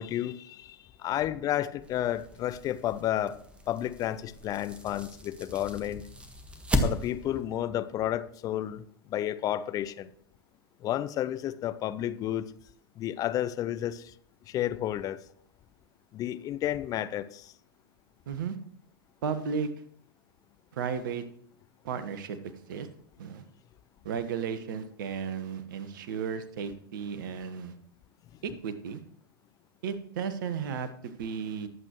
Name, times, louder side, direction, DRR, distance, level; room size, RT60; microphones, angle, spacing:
voice 1, 0.0-3.4 3.7-6.0 6.8-8.8 9.1-10.1 10.8-12.5 13.0-14.1 14.5-15.2 16.1-17.5, left 12 dB, 30° left, 13 dB, 0.6 m, -31 dB
sound 1, 1.8-7.4, equal, 10° right, 1.5 m, -35 dB
voice 2, 18.3-18.6 19.2-19.7 20.7-21.2 21.8-22.4 22.7-22.9 23.2-23.4 24.0-27.7 28.4-29.0 29.8-31.7, right 6 dB, 55° right, 12 dB, 1.3 m, -34 dB
20.0 x 8.2 x 3.1 m, 0.63 s
figure-of-eight pair, 95°, 13 cm